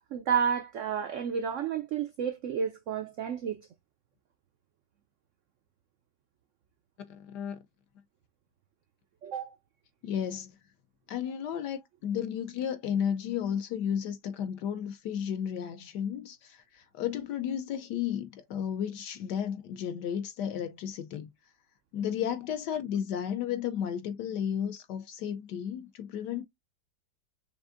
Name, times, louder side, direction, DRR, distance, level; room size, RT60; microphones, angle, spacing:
voice 1, 0.0-3.6 9.2-9.5, right 7 dB, 85° right, 0.6 m, -31 dB
voice 2, 7.1-7.6 10.0-10.6 11.1-21.3 21.9-26.4, left 9 dB, 75° left, 1.1 m, -33 dB
5.9 x 2.5 x 2.5 m
omnidirectional pair, 1.9 m